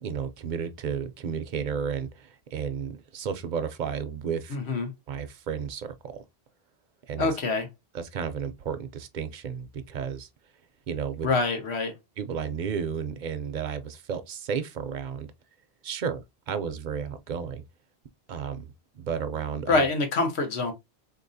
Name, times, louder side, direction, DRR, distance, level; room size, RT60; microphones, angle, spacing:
voice 1, 0.0-2.1 2.5-4.6 5.1-5.9 7.1-7.3 7.9-10.3 10.9-11.3 12.2-15.3 15.8-17.6 18.3-18.7 19.0-19.8, right 7 dB, 55° right, 0.6 m, -32 dB
voice 2, 4.5-4.9 7.2-7.7 11.2-11.9 19.7-20.7, left 3 dB, 85° left, 1.2 m, -25 dB
3.9 x 2.9 x 2.6 m
omnidirectional pair, 1.1 m